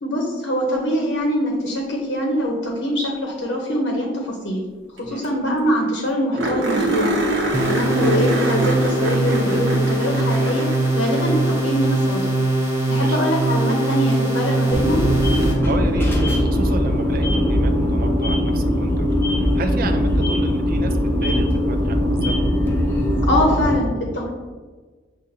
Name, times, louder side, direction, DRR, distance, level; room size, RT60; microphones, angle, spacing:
voice 1, 0.0-4.7 4.9-7.2 7.6-12.3 12.9-15.0 23.2-24.3, equal, 70° left, -1 dB, 0.7 m, -23 dB
sound 1, 5.0-5.1 5.2-5.3 5.7-5.8 6.3-11.8 14.1-14.2 17.1-17.2, right 1 dB, 85° right, 0.9 m, -25 dB
sound 2, 7.5-15.5, right 2 dB, 15° right, 0.9 m, -21 dB
sound 3, 14.7-23.8, equal, 15° left, 0.6 m, -20 dB
voice 2, 15.6-19.1 19.4-22.4, right 3 dB, 50° right, 6 dB, 0.4 m, -32 dB
6.5 x 2.5 x 2.7 m, 1.4 s
head